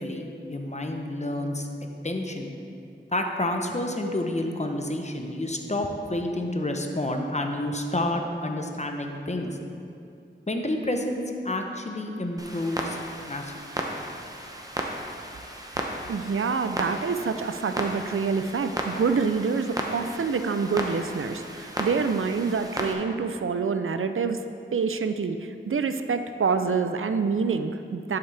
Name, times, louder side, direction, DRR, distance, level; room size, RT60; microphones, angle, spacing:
voice 1, 0.0-1.7 2.0-2.5 3.1-9.6 10.5-13.0 13.3-13.7, left 1 dB, 35° left, 3 dB, 0.8 m, -29 dB
Clock, 12.4-22.9, right 1 dB, 15° right, 0.8 m, -35 dB
voice 2, 16.1-24.4 24.7-28.2, right 5 dB, 80° right, 8 dB, 0.4 m, -26 dB
11.0 x 5.8 x 3.3 m, 2.6 s
wide cardioid pair, 40°, 21 cm